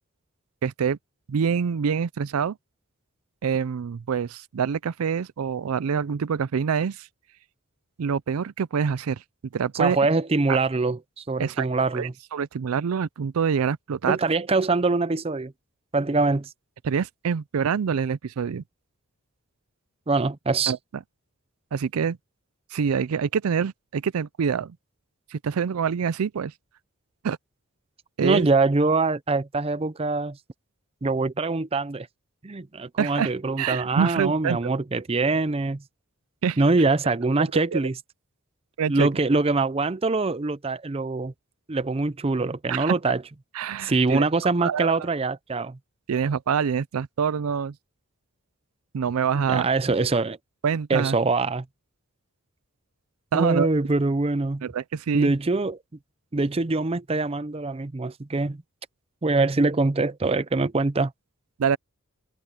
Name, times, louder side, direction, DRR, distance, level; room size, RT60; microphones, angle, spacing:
voice 1, 0.6-1.0 1.3-2.6 3.4-7.1 8.0-9.2 9.5-10.0 11.4-11.7 11.9-14.2 16.8-18.6 20.7-20.8 21.7-22.2 22.7-24.8 25.3-26.5 27.2-27.4 28.2-28.5 33.0-33.3 33.6-34.6 36.4-36.6 37.7-37.8 38.8-39.1 42.7-42.9 43.5-44.3 44.6-45.0 46.1-47.7 48.9-49.7 50.6-51.2 53.3-53.7 54.6-55.3 61.6-61.8, right 6 dB, 85° right, 0.4 m, -25 dB
voice 2, 9.7-12.1 14.1-15.5 15.9-16.5 20.1-20.7 28.2-30.4 31.0-32.1 32.4-35.8 36.6-38.0 38.9-41.3 41.7-43.2 43.8-45.8 49.4-50.4 50.9-51.6 53.3-54.6 55.1-55.8 56.3-58.6 59.2-61.1, right 3 dB, 25° right, 0.5 m, -24 dB
head